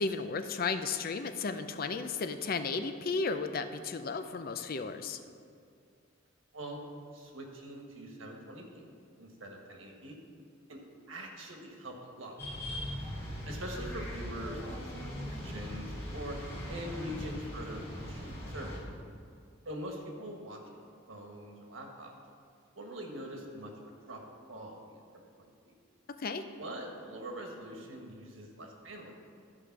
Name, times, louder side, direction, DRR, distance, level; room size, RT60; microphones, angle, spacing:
voice 1, 0.0-5.2 26.2-26.4, left 4 dB, 50° left, 9 dB, 0.5 m, -34 dB
voice 2, 7.1-8.9 9.2-10.1 10.7-10.8 11.1-12.8 13.4-16.4 16.7-18.7 19.6-20.8 21.1-22.1 22.7-23.7 24.1-25.7 26.6-29.1, right 1 dB, 85° right, 1 dB, 1.5 m, -44 dB
sound 1, 12.4-18.8, equal, 15° left, 2.5 m, -40 dB
12.0 x 4.9 x 6.0 m, 2.3 s
head